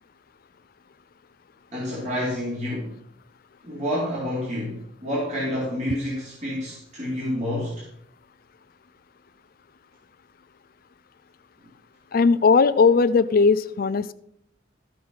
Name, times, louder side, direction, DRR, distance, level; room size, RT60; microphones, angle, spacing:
voice 1, 1.7-2.9 3.6-7.8, left 1 dB, 35° right, -6 dB, 3.4 m, -28 dB
voice 2, 12.1-14.1, left 4 dB, 50° left, 14 dB, 0.4 m, -18 dB
14.0 x 6.0 x 5.5 m, 0.69 s
head